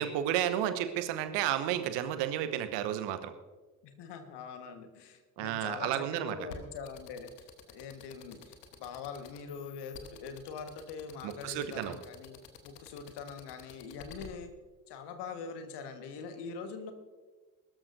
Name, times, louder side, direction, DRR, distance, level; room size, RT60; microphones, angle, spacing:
voice 1, 0.0-3.3 5.4-6.4 11.2-12.0, right 11 dB, 60° right, 11 dB, 1.1 m, -32 dB
voice 2, 3.8-14.5 14.9-16.9, left 5 dB, 55° left, 7 dB, 1.6 m, -43 dB
sound 1, 6.5-14.3, left 8 dB, 75° left, 1.3 m, -49 dB
21.5 x 13.0 x 2.7 m, 1.3 s
figure-of-eight pair, 45°, 48 cm